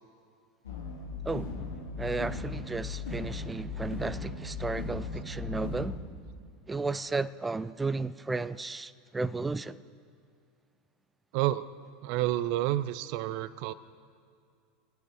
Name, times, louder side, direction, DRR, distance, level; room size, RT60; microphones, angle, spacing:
sound 1, 0.6-6.0, left 4 dB, 80° left, 2.2 m, -37 dB
voice 1, 2.0-6.0 6.7-9.8, right 3 dB, 15° right, 0.5 m, -33 dB
voice 2, 11.3-11.7 12.0-13.7, right 14 dB, 60° right, 0.6 m, -29 dB
22.0 x 9.5 x 6.0 m
hypercardioid pair, 85°, 0 cm